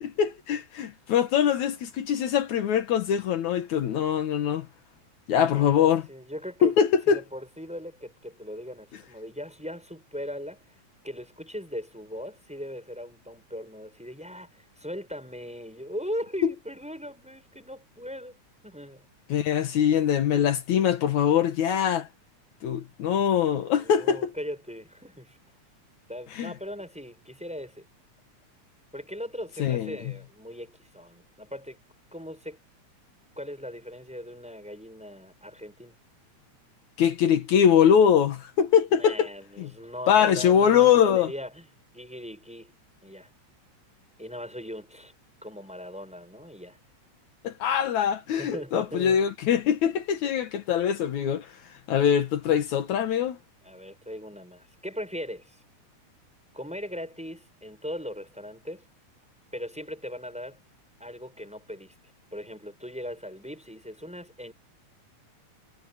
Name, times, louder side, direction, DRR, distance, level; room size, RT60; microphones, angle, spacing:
voice 1, 0.0-4.7 5.3-6.0 6.6-7.2 19.3-22.1 22.6-24.3 26.4-26.5 29.6-29.9 37.0-39.3 39.6-39.7 40.1-41.3 47.4-51.5 51.9-53.4, left 8 dB, 75° left, 2.7 m, -23 dB
voice 2, 5.3-6.8 7.1-10.6 11.0-18.4 18.6-19.0 23.8-25.4 26.1-27.9 28.9-31.8 32.1-32.6 33.4-36.0 38.9-41.7 41.9-42.7 43.0-43.3 44.2-45.1 45.4-46.8 48.3-49.2 53.6-55.6 56.5-58.8 59.5-60.6 61.0-61.9 62.3-64.5, equal, ahead, 6.6 m, -39 dB
omnidirectional pair, 3.4 m